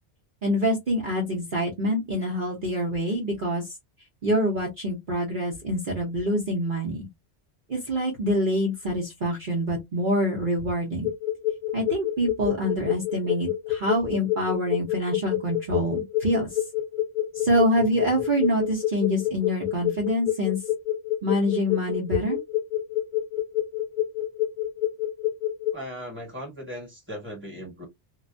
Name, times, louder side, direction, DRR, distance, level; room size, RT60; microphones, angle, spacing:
voice 1, 0.4-3.6 4.2-7.1 7.7-11.1 11.7-16.5 17.3-20.6 21.2-22.4, equal, 50° right, 1.0 m, -26 dB
sound 1, 11.0-25.7, left 13 dB, 55° left, 0.6 m, -27 dB
voice 2, 25.7-27.9, equal, 10° right, 1.3 m, -38 dB
2.4 x 2.2 x 2.5 m
omnidirectional pair, 1.2 m